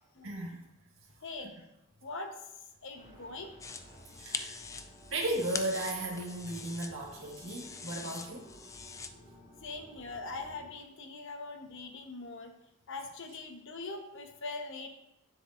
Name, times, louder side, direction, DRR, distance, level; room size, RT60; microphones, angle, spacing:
voice 1, 0.2-0.6 4.1-4.5 5.1-8.5, right 1 dB, 65° right, -1 dB, 1.7 m, -35 dB
voice 2, 1.2-1.5 2.0-2.3 2.8-3.5 9.6-12.5 12.9-14.9, left 3 dB, 60° left, 4 dB, 0.9 m, -42 dB
sound 1, 2.9-10.7, equal, 35° right, 2.5 m, -55 dB
sound 2, 3.6-9.1, left 4 dB, 15° left, 0.3 m, -43 dB
9.8 x 6.6 x 2.5 m, 0.88 s
head